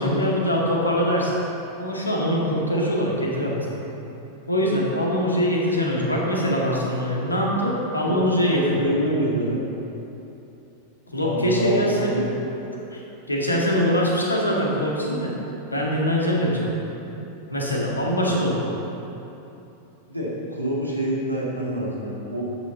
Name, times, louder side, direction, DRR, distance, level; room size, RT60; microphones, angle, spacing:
voice 1, 0.0-1.3 1.8-3.7 4.5-8.9 11.1-12.1 12.9-13.0 13.3-15.3 15.7-16.8 17.5-18.7, equal, 80° left, -3 dB, 2.0 m, -23 dB
voice 2, 8.0-9.6 11.2-12.3 20.1-22.4, right 1 dB, 90° right, -4 dB, 2.1 m, -26 dB
12.5 x 8.4 x 4.0 m, 2.9 s
figure-of-eight pair, 90°, 0 cm